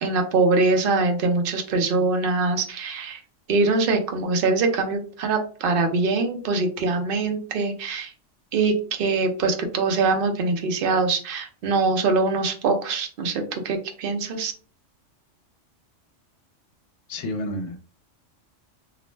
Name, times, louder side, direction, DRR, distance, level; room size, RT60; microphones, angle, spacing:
voice 1, 0.0-3.2 3.5-8.1 8.5-14.5, right 3 dB, 60° right, 5 dB, 0.6 m, -23 dB
voice 2, 17.1-17.8, left 1 dB, 70° left, 4 dB, 0.9 m, -30 dB
2.4 x 2.1 x 3.1 m, 0.39 s
omnidirectional pair, 1.3 m